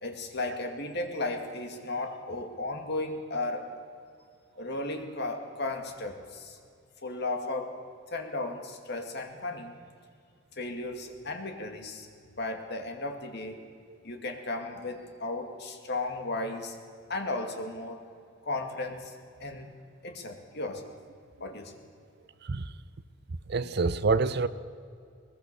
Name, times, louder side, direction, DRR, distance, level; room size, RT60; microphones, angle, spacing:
voice 1, 0.0-3.7 4.5-6.6 7.0-7.8 8.1-9.7 10.6-12.1 12.3-13.6 14.0-16.7 17.1-18.0 18.5-19.7 20.0-20.9 21.4-21.7, left 2 dB, 55° left, 2.4 m, -35 dB
voice 2, 23.5-24.5, right 4 dB, 55° right, 0.7 m, -26 dB
21.0 x 21.0 x 6.9 m
head